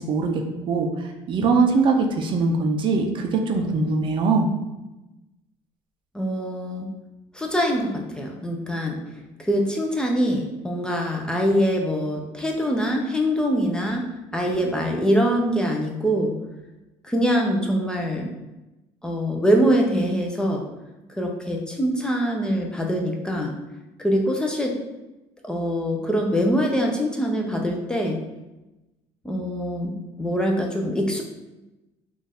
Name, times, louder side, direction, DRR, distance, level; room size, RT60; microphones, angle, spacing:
voice 1, 0.0-4.5, right 4 dB, 45° right, 3 dB, 0.5 m, -22 dB
voice 2, 6.1-6.9 7.3-9.0 9.4-16.4 17.0-18.3 19.0-20.6 21.2-23.5 24.0-24.8 25.4-28.2 29.2-31.2, equal, 5° left, 0 dB, 0.5 m, -24 dB
4.3 x 2.5 x 3.5 m, 1.0 s
cardioid pair, 115°, 11 cm